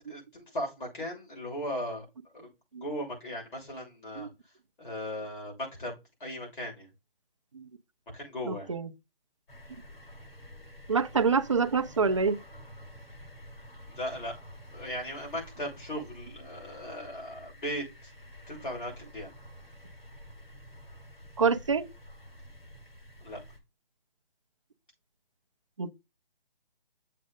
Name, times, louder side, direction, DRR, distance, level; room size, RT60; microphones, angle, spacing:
voice 1, 0.1-2.1 2.3-2.5 2.8-4.3 4.8-5.9 6.2-6.9 8.1-8.7 13.9-14.3 14.7-17.8 18.5-19.3 23.2-23.4, equal, 60° left, 7.0 m, -37 dB
voice 2, 8.4-8.9 10.9-12.4 21.4-21.9 25.8-25.9, right 5 dB, 30° right, 0.6 m, -26 dB
sound 1, 9.5-23.6, equal, 75° left, 5.3 m, -49 dB
7.5 x 6.1 x 5.2 m
hypercardioid pair, 170°, 29 cm